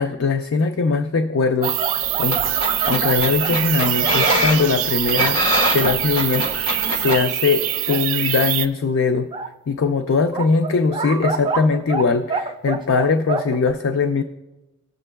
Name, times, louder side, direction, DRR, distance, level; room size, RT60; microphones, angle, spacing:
voice 1, 0.0-1.8 2.2-2.4 2.9-5.4 5.7-9.3 9.7-14.2, left 4 dB, 60° left, 7 dB, 0.4 m, -21 dB
sound 1, 1.6-4.5 5.1-6.0 6.4-6.5 6.9-7.2 7.9-8.0 9.3-9.5 10.3-12.0 12.3-13.7, right 4 dB, 20° right, 0.3 m, -27 dB
sound 2, 1.6-8.7, right 12 dB, 75° right, 0.5 m, -23 dB
sound 3, 2.0-7.2, equal, 80° left, 1.4 m, -25 dB
17.5 x 6.8 x 2.2 m, 1.1 s
head